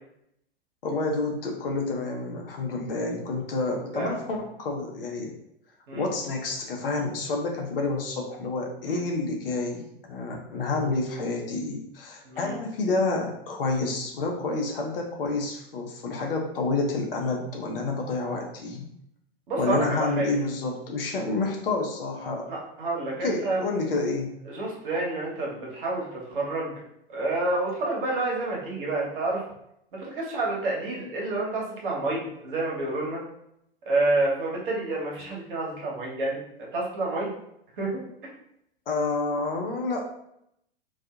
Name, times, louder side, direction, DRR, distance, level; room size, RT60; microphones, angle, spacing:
voice 1, 0.8-5.3 5.9-18.9 19.6-22.5 23.2-24.3 38.9-40.0, left 3 dB, 65° left, 1 dB, 0.7 m, -29 dB
voice 2, 12.2-12.5 19.5-20.4 22.5-23.6 24.5-26.8 27.1-29.4 29.9-33.2 33.9-36.4 36.7-37.3 37.8-37.9, right 2 dB, 60° right, -3 dB, 1.0 m, -28 dB
2.6 x 2.4 x 2.3 m, 0.77 s
figure-of-eight pair, 100°, 30 cm